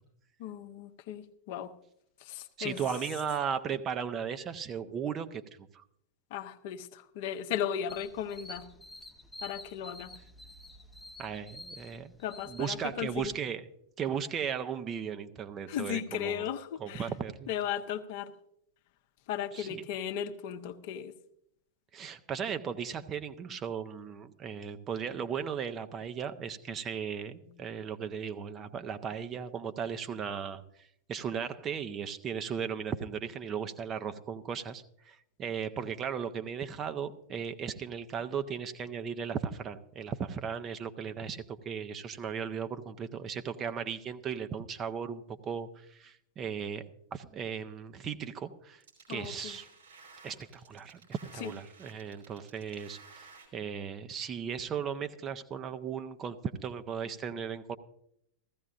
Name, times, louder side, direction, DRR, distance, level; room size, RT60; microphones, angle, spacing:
voice 1, 0.4-1.7 2.2-2.8 6.3-8.7 9.4-10.1 12.2-13.3 15.7-17.1 17.5-18.3 19.3-21.1 27.5-27.6 49.1-49.6 51.4-51.5, left 9 dB, 50° left, 8 dB, 0.8 m, -36 dB
voice 2, 2.6-5.8 11.2-12.1 12.5-13.6 14.0-16.4 16.8-17.5 19.5-19.8 21.9-46.8 47.1-48.8 49.1-49.7 50.2-56.4 56.6-57.8, right 7 dB, 30° right, 9 dB, 0.8 m, -36 dB
sound 1, 7.9-13.3, left 1 dB, 5° left, 0.8 m, -49 dB
sound 2, 48.8-53.5, right 4 dB, 70° right, 3.7 m, -55 dB
15.5 x 15.0 x 2.5 m, 0.73 s
figure-of-eight pair, 90°, 0 cm